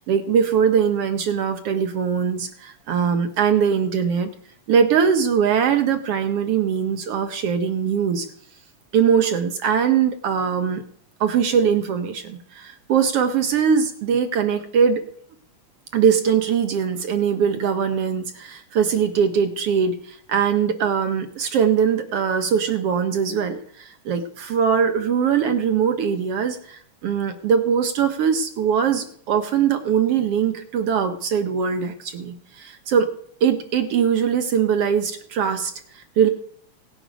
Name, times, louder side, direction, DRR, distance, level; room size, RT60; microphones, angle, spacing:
voice 1, 0.0-4.3 4.7-8.3 8.9-10.8 11.2-15.0 15.9-33.1 33.4-36.3, right 7 dB, 65° right, 7 dB, 1.6 m, -21 dB
17.5 x 9.8 x 5.1 m, 0.64 s
omnidirectional pair, 3.3 m